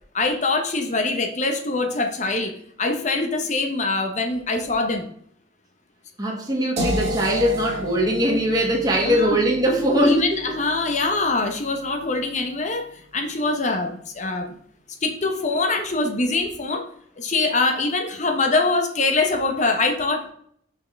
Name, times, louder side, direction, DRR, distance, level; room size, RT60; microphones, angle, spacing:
voice 1, 0.1-2.5 2.8-5.1 9.0-9.4 10.1-12.9 13.1-14.5 15.0-16.8 17.2-20.3, left 3 dB, 40° left, 5 dB, 0.9 m, -23 dB
voice 2, 6.2-10.4, equal, 20° right, -2 dB, 1.6 m, -21 dB
sound 1, 6.8-12.7, right 1 dB, 35° right, 2.1 m, -32 dB
5.9 x 5.8 x 3.4 m, 0.64 s
head